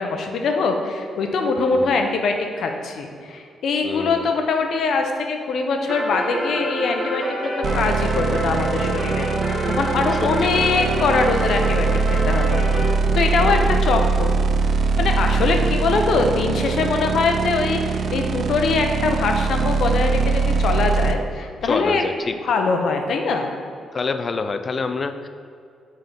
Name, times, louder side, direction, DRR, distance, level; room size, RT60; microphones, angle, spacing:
voice 1, 0.0-12.6 13.1-14.3 15.0-22.0 22.4-23.5, left 4 dB, 65° left, 4 dB, 0.7 m, -22 dB
voice 2, 1.7-2.0 3.8-4.3 10.1-10.6 13.4-13.9 21.6-22.4 23.9-25.3, left 4 dB, 35° left, 9 dB, 0.4 m, -27 dB
sound 1, 5.9-12.9, equal, 25° right, 1.4 m, -28 dB
sound 2, 7.6-21.1, right 4 dB, 50° right, 0.4 m, -22 dB
5.4 x 3.7 x 5.5 m, 2.3 s
cardioid pair, 120°, 0 cm